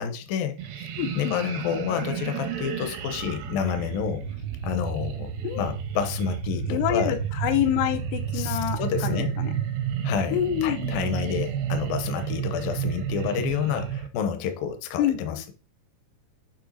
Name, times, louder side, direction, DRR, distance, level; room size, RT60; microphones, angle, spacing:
voice 1, 0.0-0.9 1.2-4.2 4.6-5.3 5.6-7.2 8.3-9.3 10.0-15.5, left 8 dB, 75° left, 2.4 m, -29 dB
sound 1, 0.6-14.1, right 8 dB, 85° right, 3.1 m, -31 dB
voice 2, 1.0-1.4 5.4-5.7 6.7-9.5 10.3-11.0 15.0-15.4, left 11 dB, 90° left, 3.1 m, -27 dB
8.8 x 3.3 x 5.5 m
omnidirectional pair, 4.7 m